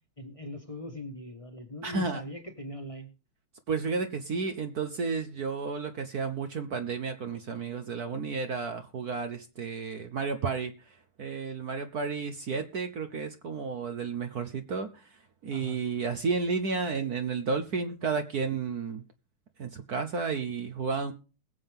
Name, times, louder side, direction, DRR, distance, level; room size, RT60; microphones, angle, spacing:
voice 1, 0.2-3.1 15.5-15.8, left 1 dB, 15° left, 5 dB, 1.6 m, -41 dB
voice 2, 1.8-2.2 3.7-19.0 19.6-21.1, right 4 dB, 55° right, 8 dB, 1.3 m, -32 dB
21.0 x 7.7 x 3.5 m, 0.32 s
omnidirectional pair, 2.2 m